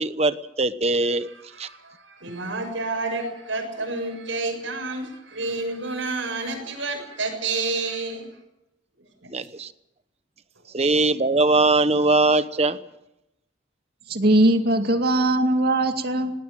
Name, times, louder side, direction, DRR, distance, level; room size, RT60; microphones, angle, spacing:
voice 1, 0.0-1.3 1.6-1.7 9.3-9.7 10.7-12.8, right 2 dB, 35° right, 12 dB, 1.0 m, -21 dB
voice 2, 1.3-8.3 9.2-9.5, right 3 dB, 80° right, 4 dB, 7.0 m, -30 dB
voice 3, 14.1-16.3, right 1 dB, 55° right, 6 dB, 2.3 m, -20 dB
19.0 x 19.0 x 8.9 m, 0.89 s
head